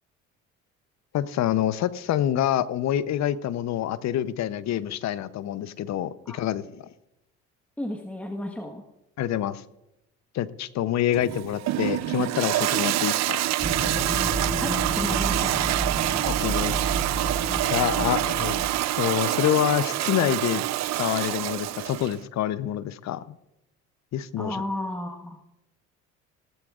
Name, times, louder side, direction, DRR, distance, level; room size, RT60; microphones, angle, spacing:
voice 1, 1.1-6.8 9.2-9.6 10.3-13.4 16.3-16.9 17.7-18.5 19.0-20.6 21.0-23.4 24.1-24.6, left 11 dB, 50° left, 16 dB, 0.8 m, -26 dB
voice 2, 7.8-8.8 14.5-15.6 24.4-25.4, left 1 dB, 5° left, 3 dB, 1.4 m, -33 dB
Toilet flush, 11.1-22.2, right 15 dB, 50° right, 0.5 m, -26 dB
sound 1, 13.6-18.8, right 2 dB, 15° right, 5.2 m, -30 dB
17.0 x 13.5 x 2.5 m, 0.90 s
hypercardioid pair, 65°, 35 cm